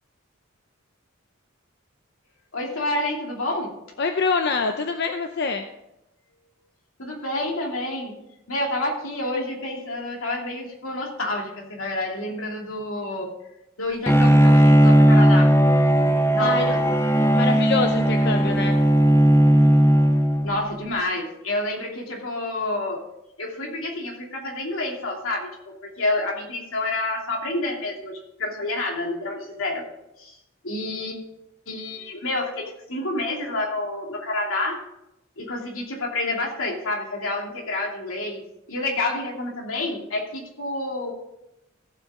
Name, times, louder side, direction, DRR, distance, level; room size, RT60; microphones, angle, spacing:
voice 1, 2.5-3.7 7.0-8.1 8.5-13.3 13.8-15.5 16.3-16.8 17.5-17.6 20.4-23.0 23.4-29.8 30.2-30.4 30.6-31.2 31.7-34.8 35.4-38.4 38.7-41.1, left 2 dB, 85° left, -1 dB, 2.9 m, -28 dB
voice 2, 4.0-5.7 16.4-16.7 17.3-18.8, left 4 dB, 55° left, 6 dB, 0.6 m, -25 dB
Bowed string instrument, 14.1-20.7, equal, 15° left, 0.7 m, -17 dB
15.5 x 7.7 x 3.7 m, 0.87 s
head